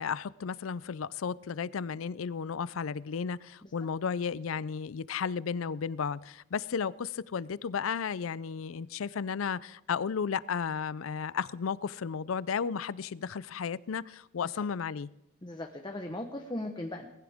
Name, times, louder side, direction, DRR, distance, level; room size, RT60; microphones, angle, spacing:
voice 1, 0.0-15.1, left 6 dB, 85° left, 20 dB, 0.5 m, -34 dB
voice 2, 15.4-17.1, left 1 dB, 20° left, 3 dB, 1.0 m, -38 dB
20.0 x 15.0 x 3.6 m, 0.91 s
head